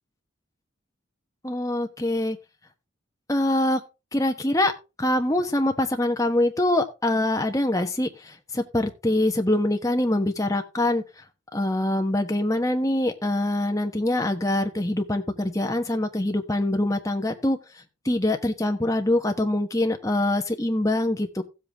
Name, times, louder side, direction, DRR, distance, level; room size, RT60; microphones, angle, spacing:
voice 1, 1.4-2.4 3.3-3.8 4.1-4.7 5.0-11.0 11.5-17.6 18.0-21.4, left 1 dB, 15° left, 5 dB, 1.2 m, -24 dB
15.5 x 7.8 x 3.5 m, 0.29 s
head